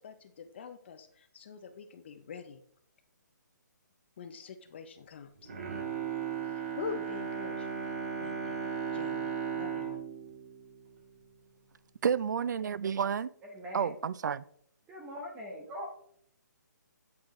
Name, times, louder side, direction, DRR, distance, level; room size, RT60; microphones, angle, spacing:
voice 1, 0.0-2.6 4.2-5.5 6.5-7.7 8.2-8.6 8.9-10.0, left 6 dB, 35° left, 0.5 m, -44 dB
Bowed string instrument, 5.4-11.6 12.1-12.2, right 7 dB, 45° right, 1.7 m, -36 dB
voice 2, 12.0-13.3 13.7-14.4, right 7 dB, 70° right, 0.4 m, -30 dB
voice 3, 13.5-13.9 14.9-15.9, equal, 10° right, 1.1 m, -41 dB
8.5 x 6.2 x 3.0 m
hypercardioid pair, 165°, 10 cm